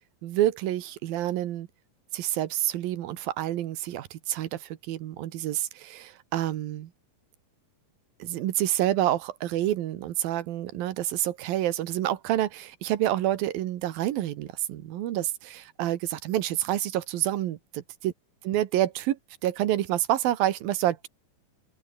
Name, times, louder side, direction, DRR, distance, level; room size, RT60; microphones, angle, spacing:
voice 1, 0.2-1.7 2.1-6.9 8.2-18.1 18.4-21.1, right 13 dB, 80° right, 3.1 m, -28 dB
open air
omnidirectional pair, 4.2 m